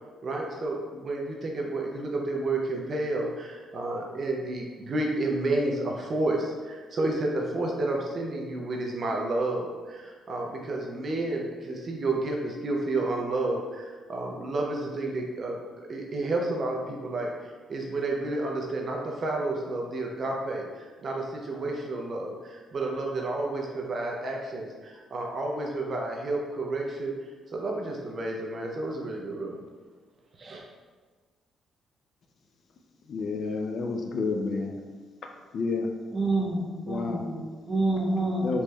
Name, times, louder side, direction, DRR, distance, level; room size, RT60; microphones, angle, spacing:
voice 1, 0.2-17.3 17.7-27.1 27.5-29.6 30.4-30.6, right 2 dB, 40° right, 0 dB, 0.4 m, -31 dB
voice 2, 33.1-34.8 35.5-35.9 36.8-37.2 38.4-38.6, left 4 dB, 50° left, 3 dB, 0.3 m, -30 dB
voice 3, 36.1-38.5, right 2 dB, 10° right, -6 dB, 1.0 m, -28 dB
4.2 x 3.1 x 2.3 m, 1.4 s
cardioid pair, 135°, 0 cm